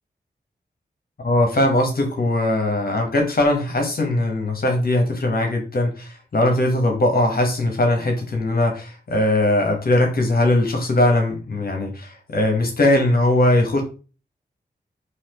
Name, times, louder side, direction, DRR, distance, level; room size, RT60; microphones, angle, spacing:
voice 1, 1.2-13.8, left 1 dB, 60° left, 2 dB, 1.2 m, -20 dB
4.1 x 2.9 x 2.9 m, 0.36 s
cardioid pair, 65°, 18 cm